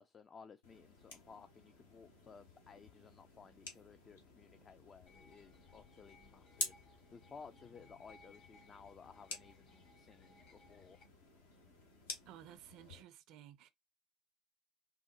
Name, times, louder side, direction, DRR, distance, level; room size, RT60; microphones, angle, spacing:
voice 1, 0.0-6.7 7.1-11.0, left 5 dB, 35° left, 0.3 m, -57 dB
sound 1, 0.6-13.0, left 3 dB, 75° left, 0.9 m, -51 dB
sound 2, 5.1-11.0, left 3 dB, 55° left, 1.5 m, -65 dB
voice 2, 12.3-13.7, right 11 dB, 60° right, 0.4 m, -55 dB
3.7 x 2.1 x 2.8 m
figure-of-eight pair, 60°, 0 cm